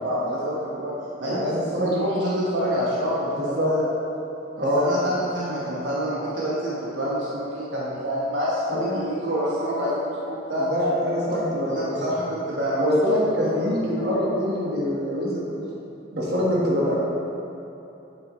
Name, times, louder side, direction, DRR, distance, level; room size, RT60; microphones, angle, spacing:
voice 1, 0.0-0.9 1.2-3.9 4.6-10.7 11.6-12.8 13.4-13.8, equal, 80° right, -7 dB, 1.1 m, -27 dB
voice 2, 1.2-1.9 3.4-3.7 4.6-5.1 8.7-8.9 10.6-12.0 12.7-15.6 16.1-17.0, equal, 55° right, -5 dB, 1.6 m, -24 dB
7.9 x 7.4 x 3.2 m, 3.0 s
head